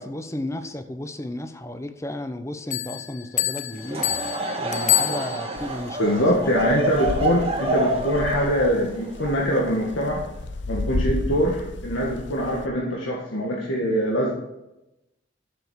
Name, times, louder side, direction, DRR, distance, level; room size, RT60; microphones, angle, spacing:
voice 1, 0.0-4.1 4.6-6.6, left 1 dB, 15° left, 8 dB, 0.8 m, -33 dB
Bell, 2.7-5.8, left 14 dB, 40° left, 0.5 m, -27 dB
Laughter / Crowd, 3.7-10.2, right 1 dB, 30° right, 1.8 m, -28 dB
sound 1, 5.6-12.7, left 2 dB, 65° left, 0.8 m, -33 dB
voice 2, 6.0-10.2 10.7-14.3, equal, 85° left, -2 dB, 1.8 m, -23 dB
11.0 x 7.1 x 6.4 m, 0.91 s
head